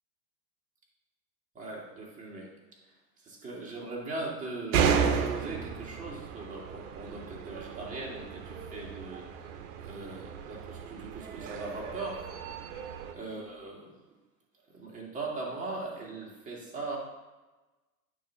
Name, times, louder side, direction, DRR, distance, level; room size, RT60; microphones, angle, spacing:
voice 1, 1.5-2.5 3.2-12.6 13.1-13.9 14.7-17.0, right 3 dB, 15° right, -4 dB, 2.0 m, -40 dB
sound 1, 4.7-13.1, right 6 dB, 55° right, 0.9 m, -33 dB
9.1 x 3.2 x 5.7 m, 1.2 s
hypercardioid pair, 130°, 46 cm